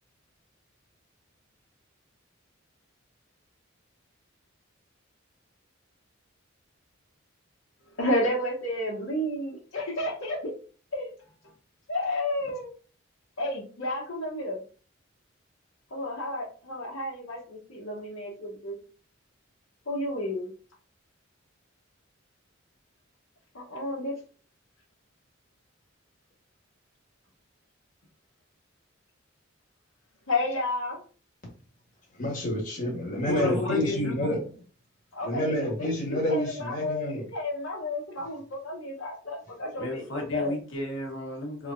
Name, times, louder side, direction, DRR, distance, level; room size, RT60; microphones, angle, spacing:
voice 1, 8.0-10.5 10.9-11.1 11.9-12.7 13.4-14.6 15.9-18.8 19.9-20.5 23.5-24.1 30.3-31.0 35.1-40.6, left 1 dB, 85° left, -6 dB, 1.1 m, -31 dB
voice 2, 32.1-34.4 35.2-37.3, left 1 dB, 40° left, -1 dB, 1.4 m, -28 dB
voice 3, 33.2-34.4 39.8-41.7, left 2 dB, 70° left, -1 dB, 1.3 m, -32 dB
3.5 x 3.1 x 2.6 m, 0.40 s
head